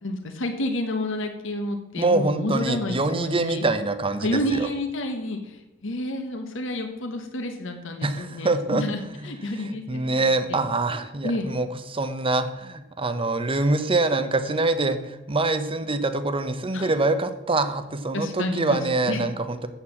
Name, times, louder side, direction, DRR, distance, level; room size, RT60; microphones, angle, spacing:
voice 1, 0.0-3.7 4.2-10.6 11.2-11.5 16.7-16.9 18.1-19.2, left 1 dB, 65° left, 4 dB, 1.3 m, -30 dB
voice 2, 2.0-4.7 8.0-8.8 9.2-19.7, right 2 dB, 25° right, 10 dB, 0.8 m, -25 dB
8.2 x 7.2 x 7.2 m, 0.99 s
head